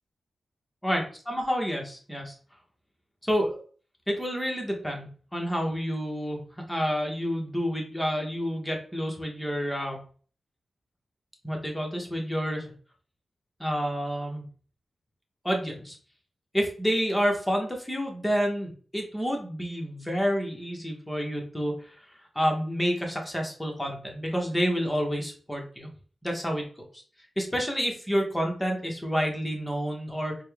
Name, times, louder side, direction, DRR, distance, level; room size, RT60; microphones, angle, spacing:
voice 1, 0.8-2.4 3.2-3.6 4.1-10.0 11.4-12.7 13.6-14.4 15.4-16.0 16.5-25.9 26.2-27.0 27.4-30.4, equal, 10° left, 1 dB, 1.3 m, -29 dB
4.2 x 2.3 x 3.4 m, 0.42 s
cardioid pair, 50°, 0 cm